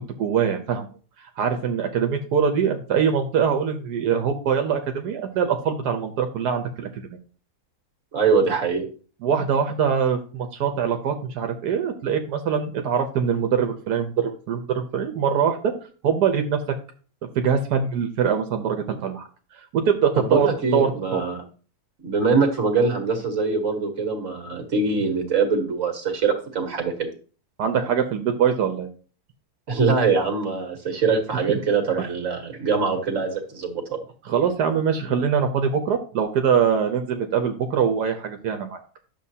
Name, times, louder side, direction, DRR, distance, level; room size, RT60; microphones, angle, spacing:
voice 1, 0.2-0.9 1.4-7.0 9.2-15.7 16.0-16.6 17.3-19.3 19.7-21.2 27.6-28.9 34.2-38.8, right 7 dB, 90° right, 6 dB, 1.4 m, -23 dB
voice 2, 8.1-8.8 20.2-21.4 22.0-27.1 29.7-34.0, right 4 dB, 55° right, 3 dB, 1.9 m, -23 dB
10.0 x 6.8 x 2.8 m, 0.39 s
omnidirectional pair, 1.7 m